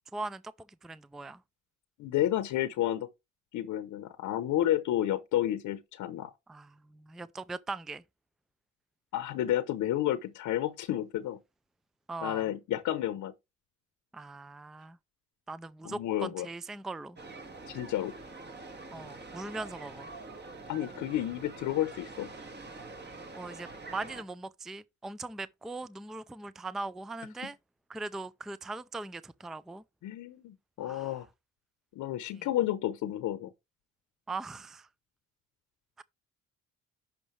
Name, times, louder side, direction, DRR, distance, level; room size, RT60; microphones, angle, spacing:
voice 1, 0.1-0.4 0.8-1.4 6.5-8.0 12.1-12.5 14.1-15.0 15.5-17.2 18.9-20.1 23.3-27.6 27.9-29.8 30.8-31.2 32.3-32.5 34.3-34.9 36.0-36.1, right 3 dB, ahead, 0.4 m, -40 dB
voice 2, 2.0-3.1 3.5-6.3 9.1-11.4 12.2-13.3 15.8-16.5 17.7-18.1 20.7-22.3 30.0-31.3 31.9-33.5, left 12 dB, 80° left, 0.8 m, -31 dB
sound 1, 17.2-24.2, right 3 dB, 35° right, 1.8 m, -46 dB
10.5 x 6.0 x 3.2 m
cardioid pair, 90°, 30 cm